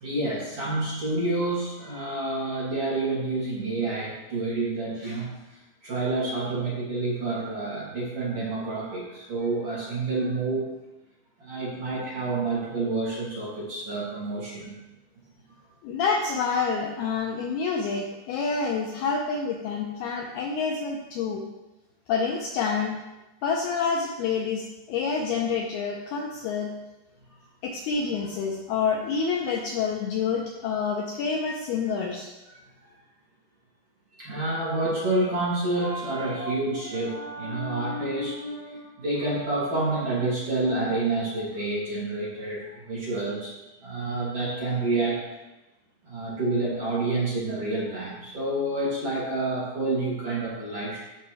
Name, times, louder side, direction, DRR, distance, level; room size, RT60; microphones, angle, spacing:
voice 1, 0.0-5.3 5.8-10.6 11.4-14.7 15.5-15.6 34.2-43.5 43.8-45.2 46.0-51.0, right 2 dB, 40° right, -8 dB, 2.8 m, -28 dB
voice 2, 15.8-21.5 22.1-23.0 23.4-26.7 27.6-32.3, left 5 dB, 90° left, 1 dB, 2.2 m, -28 dB
16.0 x 5.7 x 3.2 m, 1.0 s
omnidirectional pair, 5.5 m